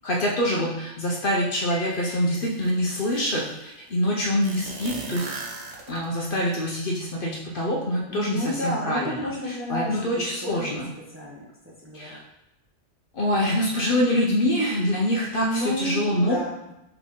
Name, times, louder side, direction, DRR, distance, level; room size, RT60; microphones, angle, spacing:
voice 1, 0.0-5.3 5.9-10.9 11.9-12.2 13.1-16.3, equal, 50° left, -3 dB, 0.9 m, -25 dB
Piano, 1.7-2.7, left 9 dB, 25° left, 0.4 m, -42 dB
sound 1, 1.9-2.0 2.4-3.5 4.4-6.2, right 4 dB, 85° right, 1.1 m, -37 dB
voice 2, 8.1-10.8 11.1-12.2 15.4-16.7, equal, 10° right, -5 dB, 0.8 m, -31 dB
4.1 x 3.3 x 3.6 m, 0.91 s
omnidirectional pair, 1.2 m